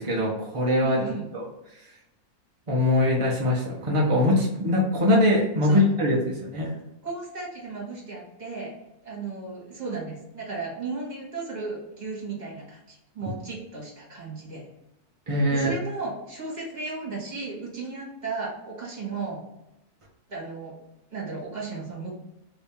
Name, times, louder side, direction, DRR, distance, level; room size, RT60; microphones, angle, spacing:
voice 1, 0.0-1.0 1.3-1.4 2.7-6.7 15.3-15.7, left 1 dB, 50° right, -3 dB, 0.3 m, -22 dB
voice 2, 0.8-1.3 5.6-5.8 7.0-8.7 9.0-14.6 15.5-19.4 20.3-20.8 21.1-22.1, right 4 dB, 30° right, -5 dB, 1.3 m, -35 dB
3.0 x 2.7 x 3.4 m, 0.91 s
omnidirectional pair, 1.6 m